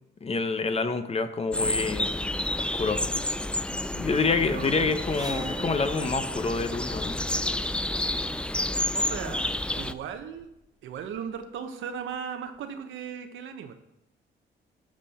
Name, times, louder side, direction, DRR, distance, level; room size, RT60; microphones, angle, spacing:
voice 1, 0.2-2.1 2.6-3.0 4.0-7.1, left 4 dB, 30° left, 10 dB, 0.8 m, -27 dB
sound 1, 1.5-9.9, left 1 dB, 5° left, 0.3 m, -30 dB
voice 2, 3.8-4.8 8.9-10.5 10.8-13.7, right 7 dB, 75° right, 7 dB, 1.0 m, -37 dB
sound 2, 4.9-7.4 8.4-8.6 9.4-9.5 9.7-10.6 10.9-11.4 12.1-12.2 12.6-12.7, right 3 dB, 20° right, 0.8 m, -43 dB
12.5 x 5.5 x 4.3 m, 0.85 s
cardioid pair, 90°, 20 cm